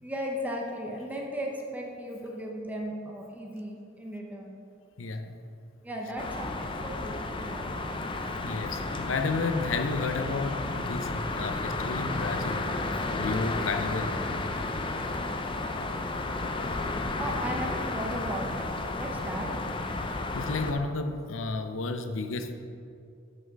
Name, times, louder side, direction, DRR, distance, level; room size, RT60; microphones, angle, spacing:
voice 1, 0.0-4.6 5.8-7.8 17.2-18.7 18.9-19.5, equal, 10° right, -1 dB, 0.8 m, -36 dB
voice 2, 5.0-5.4 8.4-12.6 13.2-14.1 14.7-14.9 20.3-22.5, left 3 dB, 75° left, 6 dB, 0.6 m, -32 dB
sound 1, 6.2-20.7, left 2 dB, 25° left, 0.5 m, -32 dB
7.4 x 6.6 x 5.3 m, 2.6 s
head